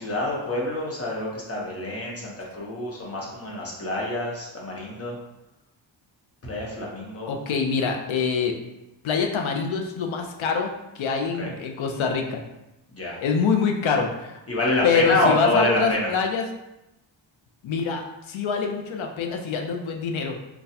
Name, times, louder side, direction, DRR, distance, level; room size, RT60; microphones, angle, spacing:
voice 1, 0.0-5.2 6.4-7.3 11.4-11.5 12.9-13.2 14.5-16.1, left 2 dB, 30° left, -4 dB, 0.9 m, -27 dB
voice 2, 7.3-8.5 9.0-10.7 10.9-12.4 13.2-14.4 14.8-16.5 17.6-20.4, left 5 dB, 80° left, 3 dB, 0.6 m, -25 dB
3.9 x 2.3 x 2.7 m, 0.92 s
wide cardioid pair, 135°, 46 cm